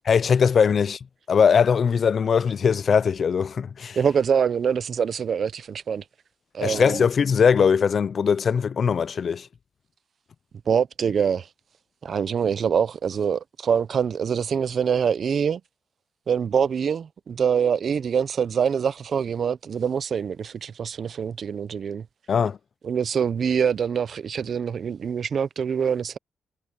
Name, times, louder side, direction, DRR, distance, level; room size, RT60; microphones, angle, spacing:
voice 1, 0.1-1.0 1.3-4.0 6.6-9.5 22.3-22.6, left 6 dB, 45° left, 0.4 m, -20 dB
voice 2, 4.0-6.0 6.5-7.0 10.7-11.5 12.0-15.6 16.3-22.1 22.8-26.2, right 7 dB, 45° right, 0.5 m, -24 dB
cardioid pair, 140°, 0 cm